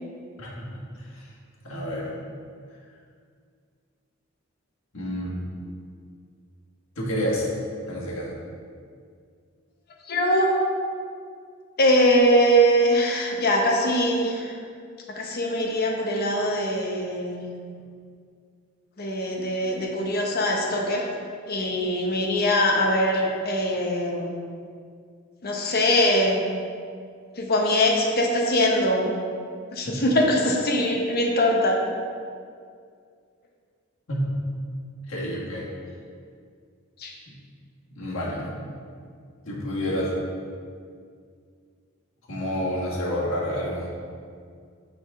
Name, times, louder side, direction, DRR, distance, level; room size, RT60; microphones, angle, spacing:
voice 1, 0.4-1.3 1.6-2.1 4.9-5.7 6.9-7.5 7.8-8.3 29.8-29.9 34.1-34.3 35.1-35.7 37.3-37.4 37.9-38.7 39.4-40.1 42.3-43.9, equal, 80° left, -5 dB, 1.7 m, -29 dB
voice 2, 10.1-10.6 11.8-14.6 15.1-17.5 19.0-21.1 21.5-24.4 25.4-26.5 27.4-29.1 29.7-31.8 37.0-37.1, equal, 50° left, 0 dB, 0.9 m, -22 dB
6.1 x 4.0 x 4.8 m, 2.2 s
head